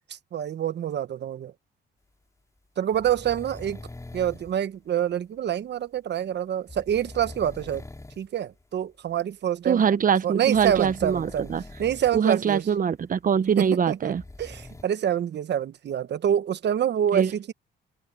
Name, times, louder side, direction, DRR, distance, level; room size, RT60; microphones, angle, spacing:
voice 1, 0.1-1.5 2.8-3.8 4.1-7.8 8.2-9.8 10.2-11.5 11.8-12.7 13.6-17.5, right 10 dB, 60° right, 1.2 m, -26 dB
sound 1, 2.9-4.6 6.7-8.3 8.6-8.8 10.5-12.2 12.5-12.6 13.9-14.8, left 2 dB, 15° left, 3.8 m, -43 dB
voice 2, 9.7-11.6 12.1-14.2 17.1-17.3, right 7 dB, 45° right, 1.0 m, -23 dB
cardioid pair, 90°, 20 cm